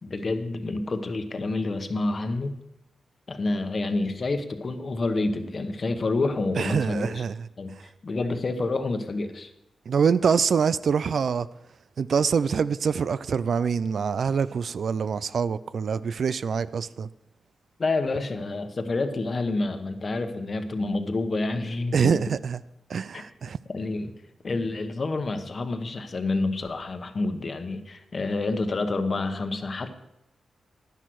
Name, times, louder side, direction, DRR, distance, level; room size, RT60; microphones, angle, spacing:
voice 1, 0.0-2.5 3.3-7.2 7.6-7.8 8.0-9.5 17.8-22.2 23.1-23.2 23.7-24.1 24.4-29.9, left 3 dB, 40° left, 1.1 m, -28 dB
voice 2, 6.6-7.4 9.9-11.5 12.0-17.1 21.9-22.6 22.9-23.6, right 6 dB, 65° right, 0.4 m, -25 dB
11.0 x 10.0 x 4.7 m
cardioid pair, 100°, 0 cm